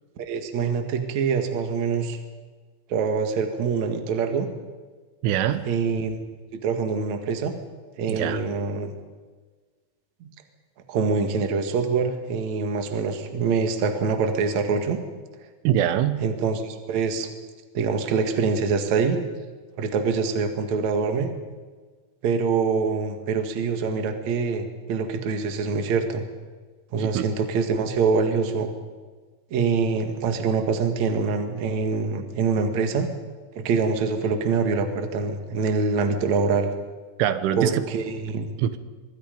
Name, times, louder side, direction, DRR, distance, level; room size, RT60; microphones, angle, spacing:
voice 1, 0.2-2.2 2.9-4.5 5.7-6.2 6.6-7.5 8.0-8.9 10.2-10.3 10.9-15.0 16.2-17.3 17.7-19.2 19.8-21.3 22.2-26.2 26.9-28.7 29.5-33.1 33.6-36.7 37.6-38.5, right 5 dB, 50° right, 6 dB, 2.5 m, -25 dB
voice 2, 5.2-5.7 8.1-8.4 15.7-16.2 27.0-27.3 37.2-37.9 38.6-38.8, right 10 dB, 85° right, 12 dB, 3.5 m, -23 dB
25.0 x 23.0 x 5.3 m, 1.4 s
omnidirectional pair, 5.5 m